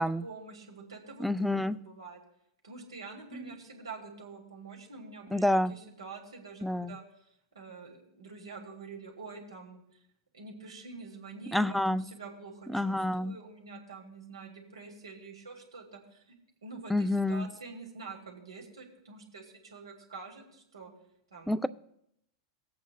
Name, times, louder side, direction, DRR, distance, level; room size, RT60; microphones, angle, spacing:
voice 1, 0.0-2.2 2.6-7.0 7.5-9.8 10.3-16.4 16.6-20.9 21.3-21.6, right 4 dB, 85° right, 1 dB, 2.0 m, -46 dB
voice 2, 1.2-1.8 3.3-3.5 5.3-5.7 6.6-7.0 11.5-12.0 12.7-13.4 16.9-17.5 21.5-21.7, left 1 dB, ahead, 13 dB, 0.4 m, -28 dB
19.0 x 8.1 x 2.2 m, 0.75 s
hypercardioid pair, 100°, 3 cm